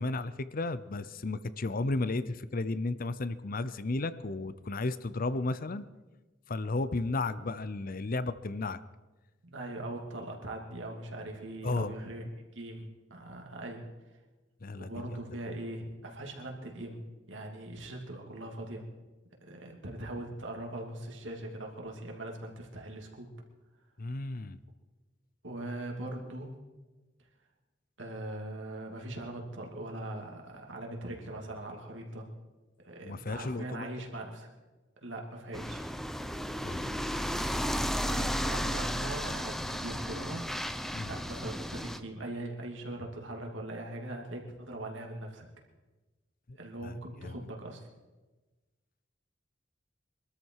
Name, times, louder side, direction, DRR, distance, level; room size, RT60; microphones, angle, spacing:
voice 1, 0.0-5.8 6.5-8.8 11.6-11.9 14.6-15.2 24.0-24.6 33.0-33.9 36.6-36.9 40.9-41.1 46.8-47.0 47.2-47.3, left 2 dB, 50° left, 14 dB, 0.7 m, -33 dB
voice 2, 9.4-13.8 14.8-17.0 17.3-18.8 19.4-23.3 25.4-26.5 28.0-32.3 32.8-34.5 35.0-35.9 37.1-37.5 38.0-40.5 41.0-45.5 46.6-47.8, right 1 dB, 75° right, 1 dB, 2.8 m, -41 dB
sound 1, 35.5-42.0, equal, ahead, 0.7 m, -34 dB
23.5 x 13.0 x 4.7 m, 1.2 s
head